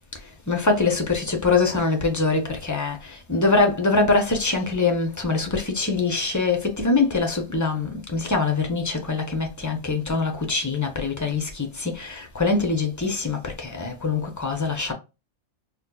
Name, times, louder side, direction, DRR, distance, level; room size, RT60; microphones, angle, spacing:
voice 1, 0.1-14.9, left 3 dB, 25° left, 0.4 m, -24 dB
4.2 x 2.3 x 2.3 m
omnidirectional pair, 1.3 m